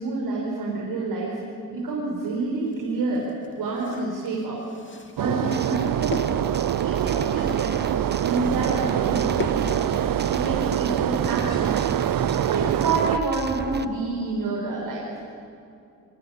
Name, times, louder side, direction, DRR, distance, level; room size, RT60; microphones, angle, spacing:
voice 1, 0.0-1.4 1.7-3.3 3.5-4.6 5.2-6.3 6.8-7.7 8.2-9.9 10.2-11.8 12.3-15.1, right 3 dB, 85° right, -3 dB, 5.3 m, -28 dB
sound 1, 1.9-2.0 2.4-10.5 10.8-10.9 11.2-11.4, left 3 dB, 35° left, 2.7 m, -40 dB
sound 2, 5.2-13.2, right 12 dB, 70° right, 0.6 m, -25 dB
sound 3, 5.5-13.9, right 4 dB, 30° right, 1.2 m, -33 dB
27.5 x 23.0 x 8.6 m, 2.5 s
cardioid pair, 60°, 36 cm